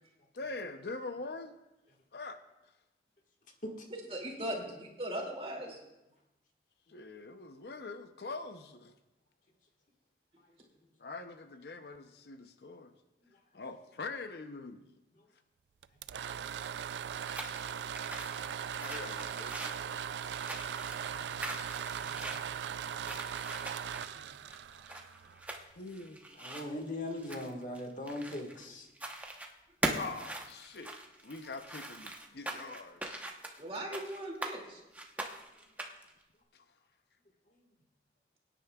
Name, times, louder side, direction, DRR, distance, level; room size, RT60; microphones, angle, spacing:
voice 1, 0.3-1.6 2.1-2.7 6.9-8.9 11.0-12.9 13.5-14.9 18.8-20.0 25.8-26.2 29.9-33.3 36.5-36.6, left 3 dB, 65° left, 8 dB, 0.6 m, -44 dB
voice 2, 4.1-5.8 24.1-24.2 33.6-34.8, right 1 dB, 35° right, 0 dB, 2.4 m, -39 dB
sound 1, 15.8-25.6, right 8 dB, 85° right, 0.4 m, -39 dB
sound 2, 17.1-28.6 28.9-29.5 29.8-34.6 34.9-36.1, right 1 dB, 10° right, 0.9 m, -42 dB
voice 3, 20.8-21.7 21.9-23.6 24.1-24.9 25.2-25.3 26.3-28.9, left 1 dB, 45° left, 2 dB, 1.6 m, -43 dB
23.0 x 10.0 x 2.3 m, 0.95 s
head